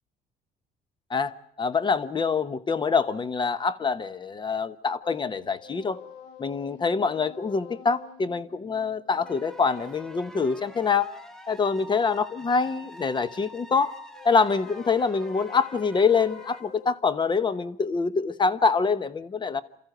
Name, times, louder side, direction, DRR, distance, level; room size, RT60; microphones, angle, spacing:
voice 1, 1.1-6.0 6.4-11.1 11.5-13.9 14.2-19.6, left 5 dB, 30° left, 1.0 m, -25 dB
sound 1, 5.0-10.4 13.7-17.7, left 9 dB, 85° left, 2.6 m, -49 dB
sound 2, 9.3-16.6, equal, 5° left, 1.7 m, -46 dB
28.5 x 14.0 x 8.0 m
cardioid pair, 110°, 17 cm